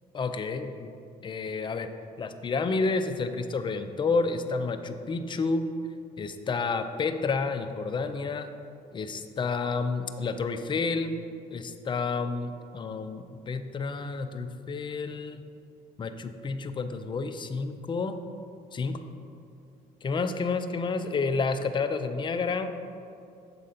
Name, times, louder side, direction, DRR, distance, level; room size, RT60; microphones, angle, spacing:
voice 1, 0.1-0.9 1.2-1.9 2.2-5.7 6.2-8.5 8.9-11.2 11.5-15.4 16.0-18.2 18.7-19.0 20.0-22.8, left 4 dB, 30° left, 8 dB, 0.4 m, -30 dB
7.4 x 3.9 x 5.6 m, 2.5 s
cardioid pair, 110°, 17 cm